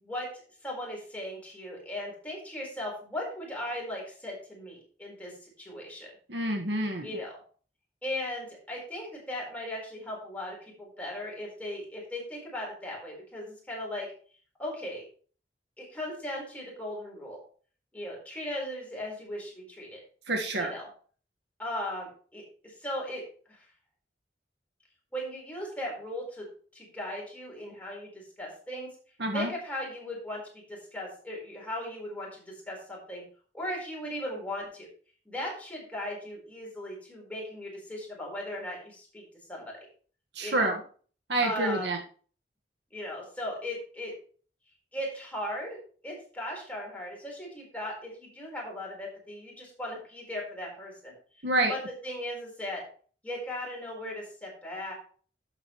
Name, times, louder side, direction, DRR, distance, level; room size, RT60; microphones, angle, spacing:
voice 1, 0.6-6.1 7.0-7.3 8.0-14.1 14.6-15.0 15.8-17.4 17.9-20.0 20.6-20.8 21.6-23.7 25.1-26.5 26.7-28.9 29.3-33.2 33.5-34.9 35.2-39.6 40.4-40.7 41.4-41.9 42.9-44.1 44.9-45.8 46.0-51.1 51.7-51.8 52.0-52.8 53.2-54.9, left 1 dB, 10° left, -3 dB, 4.6 m, -37 dB
voice 2, 6.3-7.1 20.3-20.7 29.2-29.5 40.4-40.8 41.3-42.0 51.4-51.7, right 2 dB, 75° right, 2 dB, 1.7 m, -27 dB
11.5 x 7.9 x 3.2 m, 0.43 s
head